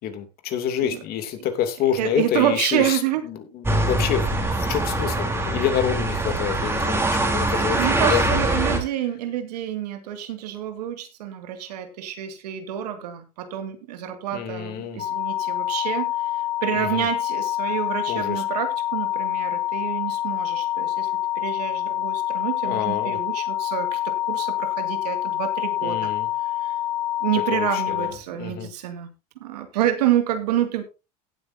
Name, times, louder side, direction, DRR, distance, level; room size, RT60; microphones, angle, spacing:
voice 1, 0.0-8.3 14.3-15.0 16.7-17.1 18.1-18.4 22.6-23.2 25.8-26.3 27.5-28.7, left 9 dB, 50° left, 8 dB, 2.8 m, -28 dB
voice 2, 2.0-3.2 7.7-26.1 26.6-26.7 27.2-29.1 29.4-30.8, right 11 dB, 90° right, 8 dB, 2.4 m, -28 dB
sound 1, 3.6-8.8, right 1 dB, 10° right, 3.3 m, -23 dB
sound 2, 15.0-28.1, left 13 dB, 35° left, 1.7 m, -26 dB
17.0 x 8.0 x 2.8 m, 0.28 s
supercardioid pair, 115°, 20 cm